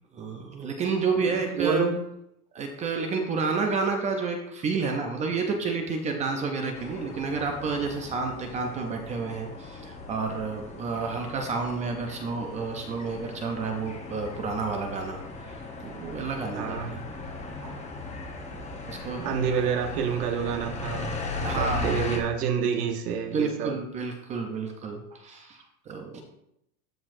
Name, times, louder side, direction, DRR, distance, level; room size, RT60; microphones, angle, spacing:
voice 1, 0.1-1.8 2.5-17.0 18.9-19.2 21.4-22.0 23.3-26.2, right 4 dB, 15° right, 3 dB, 0.5 m, -30 dB
voice 2, 1.2-2.0 16.6-17.0 17.6-17.8 19.2-21.1 21.4-23.7, right 7 dB, 85° right, 4 dB, 1.1 m, -28 dB
sound 1, 6.7-22.2, left 3 dB, 15° left, 0.9 m, -38 dB
13.5 x 4.5 x 2.6 m, 0.80 s
supercardioid pair, 145°, 46 cm